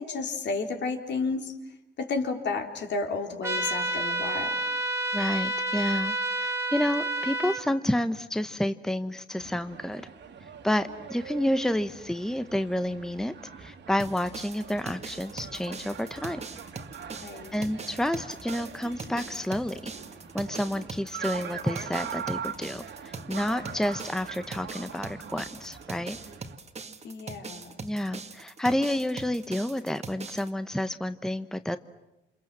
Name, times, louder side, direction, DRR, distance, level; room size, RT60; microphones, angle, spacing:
voice 1, 0.0-1.6 2.0-4.6 17.2-17.7 27.0-27.9, left 4 dB, 65° left, 3 dB, 3.8 m, -32 dB
sound 1, 3.4-7.6, right 2 dB, 15° right, 2.6 m, -29 dB
voice 2, 5.1-10.1 10.6-16.4 17.5-19.9 20.3-26.2 27.8-31.8, left 1 dB, 5° left, 10 dB, 1.0 m, -30 dB
sound 2, 9.4-26.6, right 7 dB, 65° right, 2.7 m, -42 dB
sound 3, 14.0-30.5, right 4 dB, 30° right, 1.9 m, -42 dB
28.5 x 27.0 x 7.6 m, 0.96 s
cardioid pair, 90°, 20 cm